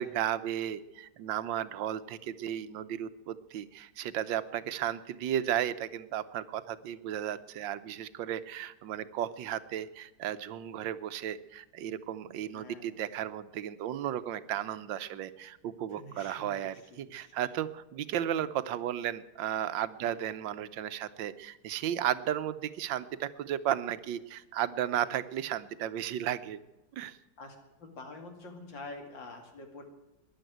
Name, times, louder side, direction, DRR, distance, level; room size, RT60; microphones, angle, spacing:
voice 1, 0.0-26.6 26.9-27.2, right 11 dB, 85° right, 14 dB, 1.5 m, -34 dB
voice 2, 12.5-12.8 15.9-17.3 20.0-20.3 27.4-29.8, left 2 dB, 80° left, 4 dB, 3.2 m, -47 dB
14.5 x 10.5 x 9.1 m, 0.99 s
omnidirectional pair, 2.0 m